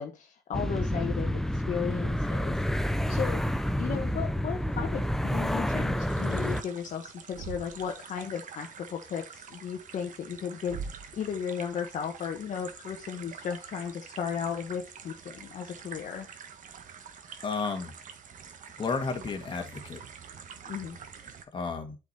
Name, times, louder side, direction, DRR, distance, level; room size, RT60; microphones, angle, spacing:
voice 1, 0.0-2.6 3.1-3.5 3.8-10.8 11.1-16.3 20.6-21.0, left 7 dB, 50° left, 3 dB, 1.2 m, -35 dB
sound 1, 0.5-6.6, equal, ahead, 0.6 m, -29 dB
sound 2, 6.0-21.4, right 7 dB, 50° right, 1.4 m, -47 dB
Thump thud, 7.3-8.0 10.7-11.2, right 5 dB, 75° right, 1.3 m, -40 dB
voice 2, 17.4-17.9 18.8-20.0 21.5-22.0, left 4 dB, 30° left, 5 dB, 1.9 m, -32 dB
8.2 x 5.0 x 4.2 m, 0.30 s
cardioid pair, 110°, 17 cm